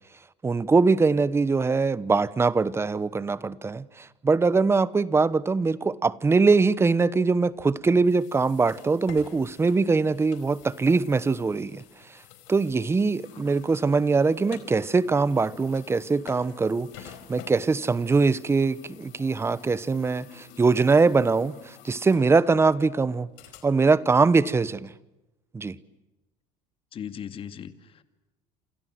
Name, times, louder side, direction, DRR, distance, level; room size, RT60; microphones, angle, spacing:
voice 1, 0.4-11.8 12.5-23.3 23.6-24.9 25.5-25.8, right 4 dB, 20° right, 1.1 m, -22 dB
sound 1, 7.3-24.1, left 11 dB, 80° left, 4.6 m, -51 dB
sound 2, 13.2-23.0, left 9 dB, 55° left, 4.8 m, -52 dB
voice 2, 26.9-28.0, left 8 dB, 40° left, 2.3 m, -38 dB
28.0 x 27.5 x 7.8 m
supercardioid pair, 115°, 14 cm